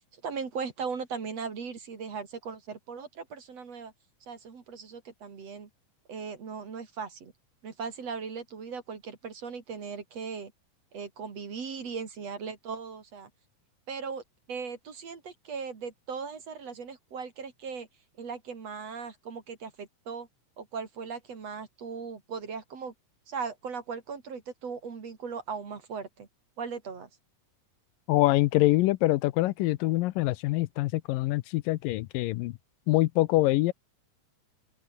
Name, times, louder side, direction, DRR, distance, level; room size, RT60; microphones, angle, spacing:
voice 1, 0.1-3.9 4.3-5.7 6.1-7.3 7.6-10.5 10.9-13.3 13.9-17.9 18.2-20.3 20.6-22.9 23.3-26.3 26.6-27.1, right 5 dB, 50° right, 3.9 m, -38 dB
voice 2, 28.1-32.6 32.9-33.7, left 18 dB, 80° left, 2.4 m, -25 dB
omnidirectional pair, 4.0 m